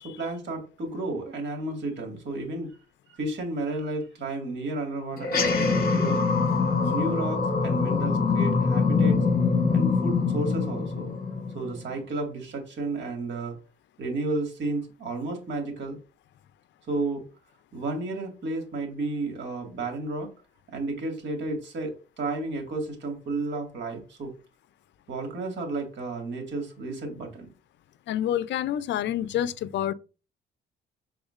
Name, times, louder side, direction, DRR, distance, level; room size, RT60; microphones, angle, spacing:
voice 1, 0.0-2.8 3.1-6.2 6.8-9.2 9.7-11.1 11.5-13.6 14.0-16.0 16.9-17.2 17.7-20.3 20.7-24.3 25.1-27.5, right 2 dB, 65° right, 1.7 m, -32 dB
sound 1, 5.2-11.9, left 4 dB, 50° left, 1.1 m, -24 dB
voice 2, 28.1-29.9, left 11 dB, 65° left, 0.4 m, -28 dB
6.2 x 3.6 x 2.4 m
cardioid pair, 90°, 20 cm